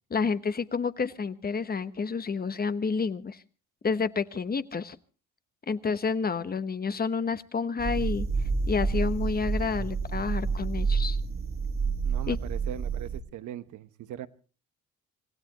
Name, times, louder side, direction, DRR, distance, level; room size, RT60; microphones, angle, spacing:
voice 1, 0.1-3.4 3.8-5.0 5.7-8.3 8.7-11.2 12.3-12.4, left 5 dB, 30° left, 13 dB, 1.0 m, -29 dB
sound 1, 7.8-13.2, right 5 dB, 45° right, 1.7 m, -29 dB
voice 2, 12.0-14.3, right 11 dB, 80° right, 13 dB, 1.1 m, -40 dB
26.5 x 16.0 x 2.9 m, 0.36 s
cardioid pair, 90°, 30 cm